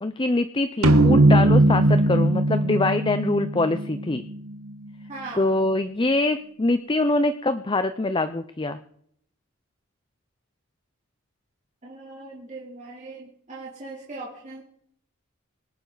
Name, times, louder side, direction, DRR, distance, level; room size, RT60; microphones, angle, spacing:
voice 1, 0.0-4.2 5.3-8.8, left 2 dB, 20° left, 10 dB, 0.6 m, -24 dB
sound 1, 0.8-4.3, right 1 dB, 75° right, 1.2 m, -19 dB
voice 2, 5.1-5.5 11.8-14.6, right 3 dB, 35° right, -5 dB, 3.3 m, -39 dB
25.5 x 9.6 x 4.0 m, 0.68 s
head